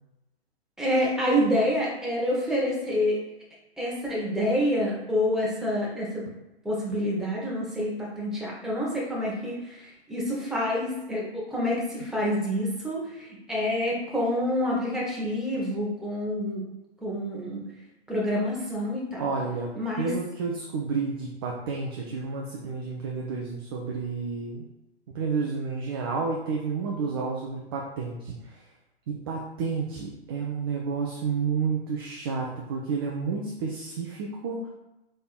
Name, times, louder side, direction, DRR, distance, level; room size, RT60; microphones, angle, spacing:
voice 1, 0.8-3.2 3.8-6.2 6.6-16.6 17.0-17.7 18.1-19.3 19.7-20.1, equal, ahead, -5 dB, 0.8 m, -27 dB
voice 2, 19.2-19.7 20.0-24.6 25.1-28.6 29.1-34.7, right 5 dB, 25° right, -1 dB, 0.3 m, -30 dB
4.2 x 3.4 x 2.3 m, 0.97 s
figure-of-eight pair, 120°, 32 cm